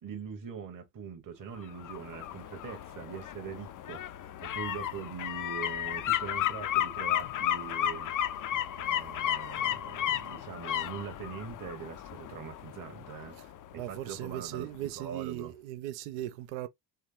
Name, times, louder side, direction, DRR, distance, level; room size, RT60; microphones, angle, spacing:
voice 1, 0.0-8.1 8.8-15.5, right 7 dB, 40° right, 1.2 m, -43 dB
sound 1, 1.6-14.4 14.7-14.8, left 11 dB, 40° left, 0.6 m, -34 dB
voice 2, 13.8-16.7, right 13 dB, 70° right, 0.8 m, -38 dB
3.6 x 3.1 x 2.7 m
hypercardioid pair, 45°, 50 cm